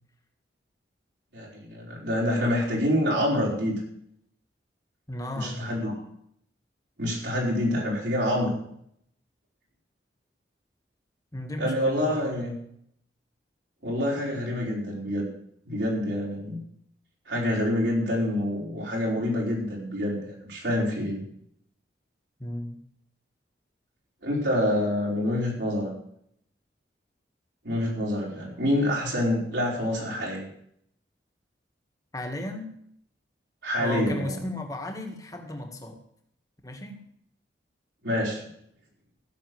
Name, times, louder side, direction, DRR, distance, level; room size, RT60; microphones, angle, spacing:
voice 1, 1.3-3.8 5.3-5.9 7.0-8.6 11.6-12.5 13.8-15.3 15.7-16.6 17.3-21.2 24.2-25.9 27.6-30.5 33.6-34.4 38.0-38.4, left 1 dB, 80° right, -4 dB, 4.8 m, -27 dB
voice 2, 5.1-5.8 11.3-12.5 22.4-22.8 32.1-32.7 33.8-36.0 36.6-37.0, left 1 dB, 20° left, 4 dB, 1.7 m, -35 dB
15.5 x 6.5 x 7.8 m, 0.70 s
head